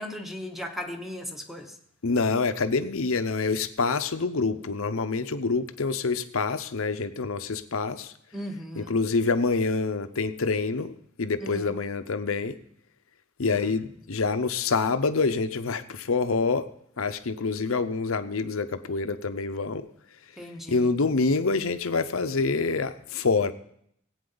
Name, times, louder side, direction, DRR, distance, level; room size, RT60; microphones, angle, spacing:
voice 1, 0.0-1.7 8.3-9.0 11.4-11.7 20.4-20.9, left 1 dB, ahead, 4 dB, 1.1 m, -37 dB
voice 2, 2.0-8.1 8.7-10.9 11.2-12.6 13.4-16.7 17.0-19.9 20.7-23.5, left 4 dB, 65° left, 10 dB, 0.7 m, -26 dB
18.0 x 8.7 x 3.9 m, 0.70 s
head